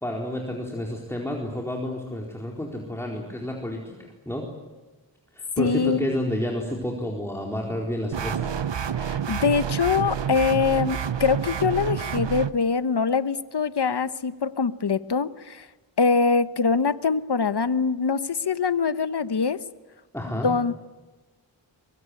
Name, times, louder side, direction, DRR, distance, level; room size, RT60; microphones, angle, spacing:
voice 1, 0.0-3.9 4.3-4.4 5.3-8.5 20.1-20.5, left 1 dB, 5° left, -1 dB, 4.3 m, -30 dB
voice 2, 5.6-6.1 9.0-15.7 16.0-19.6 20.3-20.7, left 5 dB, 65° left, 12 dB, 1.2 m, -23 dB
sound 1, 8.1-12.5, right 8 dB, 75° right, 0.9 m, -28 dB
23.5 x 23.0 x 9.7 m, 1.2 s
wide cardioid pair, 75°, 44 cm